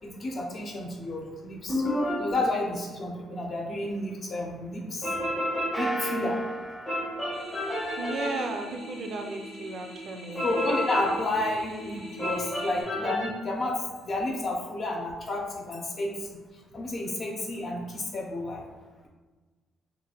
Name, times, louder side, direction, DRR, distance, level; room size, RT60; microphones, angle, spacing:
voice 1, 0.0-1.8 2.2-5.1 5.8-6.4 10.4-16.4 16.7-18.6, left 2 dB, 50° left, 0 dB, 0.6 m, -31 dB
sound 1, 1.7-2.4 5.0-5.9 6.9-8.5 10.3-11.2 12.2-13.3, equal, 25° left, 1.1 m, -30 dB
sound 2, 5.7-8.4, right 2 dB, ahead, 0.5 m, -35 dB
sound 3, 7.3-12.8, left 1 dB, 85° left, 1.2 m, -44 dB
voice 2, 8.0-10.4, right 2 dB, 65° right, 4 dB, 0.4 m, -34 dB
3.2 x 2.4 x 2.3 m, 1.3 s
cardioid pair, 90°, 0 cm